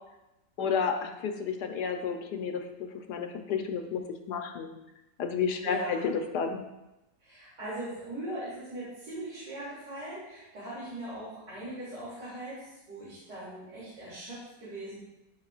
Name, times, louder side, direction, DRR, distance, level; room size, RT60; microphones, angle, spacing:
voice 1, 0.6-4.0 4.3-4.7 5.2-6.6, left 6 dB, 75° left, 5 dB, 1.3 m, -31 dB
voice 2, 5.6-6.1 7.2-15.0, right 1 dB, 80° right, -10 dB, 3.4 m, -40 dB
12.5 x 5.7 x 2.4 m, 0.97 s
omnidirectional pair, 1.9 m